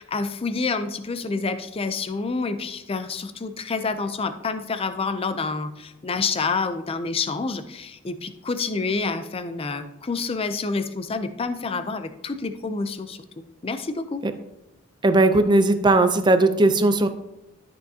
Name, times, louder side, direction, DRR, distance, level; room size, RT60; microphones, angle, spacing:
voice 1, 0.0-13.2 13.6-14.2, left 4 dB, 25° left, 10 dB, 0.5 m, -28 dB
voice 2, 15.0-17.1, right 2 dB, 20° right, 9 dB, 0.5 m, -18 dB
12.0 x 6.3 x 2.8 m, 0.91 s
head